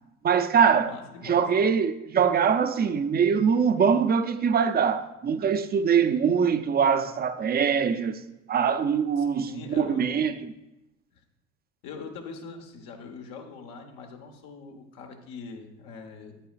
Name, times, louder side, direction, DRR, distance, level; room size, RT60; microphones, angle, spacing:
voice 1, 0.2-0.9 1.2-8.2 8.5-10.3, right 7 dB, 25° right, 0.5 m, -23 dB
voice 2, 0.8-1.5 9.2-10.1 11.8-16.4, left 4 dB, 70° left, 1.3 m, -42 dB
8.7 x 8.6 x 2.5 m
supercardioid pair, 85°, 36 cm